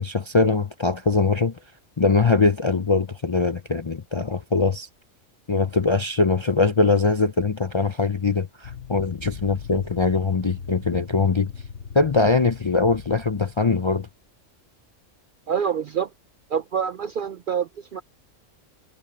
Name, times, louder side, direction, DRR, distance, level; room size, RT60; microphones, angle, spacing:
voice 1, 0.0-1.6 2.0-4.9 5.5-11.5 11.9-14.1, left 4 dB, 35° left, 0.4 m, -22 dB
sound 1, 8.6-13.8, left 6 dB, 65° left, 1.4 m, -40 dB
voice 2, 15.5-16.1 16.5-18.0, right 7 dB, 60° right, 0.5 m, -26 dB
omnidirectional pair, 1.3 m